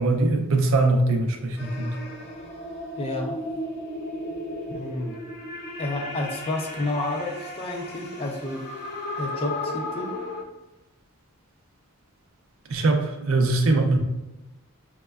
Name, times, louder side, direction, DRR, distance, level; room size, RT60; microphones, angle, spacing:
voice 1, 0.0-2.0 12.7-14.0, right 2 dB, 60° right, 3 dB, 0.4 m, -22 dB
sound 1, 1.6-10.4, left 1 dB, 50° left, 0.7 m, -35 dB
voice 2, 3.0-3.4 4.7-5.1 5.8-8.6 9.2-10.1, left 2 dB, 25° left, 1 dB, 0.3 m, -30 dB
5.1 x 2.1 x 2.3 m, 1.1 s
head